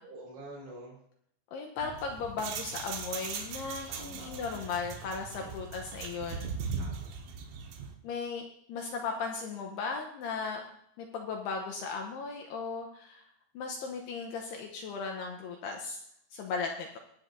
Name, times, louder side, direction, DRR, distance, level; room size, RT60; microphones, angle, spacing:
voice 1, 0.0-1.0 3.9-4.6 5.4-5.5 6.8-7.1, right 2 dB, 70° right, -7 dB, 6.5 m, -47 dB
voice 2, 1.5-6.5 8.0-10.6 11.0-13.3 13.5-16.0 16.3-17.0, left 5 dB, 75° left, 2 dB, 2.6 m, -36 dB
sound 1, 1.8-7.9, right 6 dB, 85° right, 3.7 m, -39 dB
23.5 x 8.0 x 2.7 m, 0.71 s
omnidirectional pair, 5.4 m